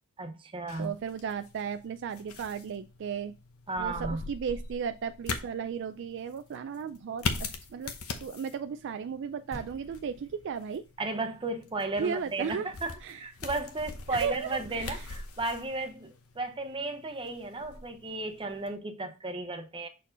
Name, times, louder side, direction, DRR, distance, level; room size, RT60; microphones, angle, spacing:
voice 1, 0.2-0.9 3.7-4.2 11.0-19.9, right 2 dB, 25° right, 0.8 m, -34 dB
sound 1, 0.7-18.8, left 4 dB, 80° left, 0.9 m, -42 dB
voice 2, 0.8-3.3 3.8-7.3 7.7-7.9 8.2-10.9 12.0-12.7 13.0-13.2 14.1-15.0, right 6 dB, 55° right, 0.3 m, -35 dB
sound 2, 9.5-14.0, equal, 15° left, 1.3 m, -53 dB
6.4 x 4.4 x 3.8 m
head